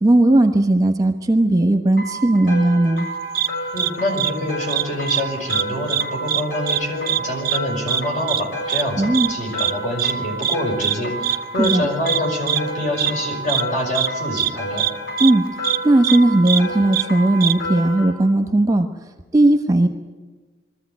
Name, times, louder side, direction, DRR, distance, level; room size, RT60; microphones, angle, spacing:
voice 1, 0.0-3.1 9.0-9.3 11.6-11.9 15.2-15.4 15.8-18.9 19.3-19.9, right 1 dB, 20° right, 6 dB, 1.1 m, -16 dB
sound 1, 2.0-18.1, right 1 dB, 85° left, 7.3 m, -30 dB
sound 2, 3.3-3.5 3.8-3.9 4.2-4.3 4.7-5.2 5.5-5.6 5.9-6.4 6.7-6.8 7.1-7.2 7.4-7.6 7.9-8.0 8.3-8.4 8.7-8.8 9.1-9.3 9.6-9.7 10.0-10.1 10.4-10.5 10.8-10.9 11.2-11.4 11.6-11.8 12.1-12.2 12.5-12.6 13.0-13.1 13.5-13.6 13.9-14.1 14.4-14.5 14.8-14.9 15.2-15.3 15.6-15.8 16.0-16.2 16.4-16.6 16.9-17.0 17.4-17.5, right 11 dB, 50° right, 0.6 m, -21 dB
voice 2, 3.7-14.9, left 1 dB, 45° left, 1 dB, 5.5 m, -26 dB
21.5 x 14.5 x 9.3 m, 1.3 s
head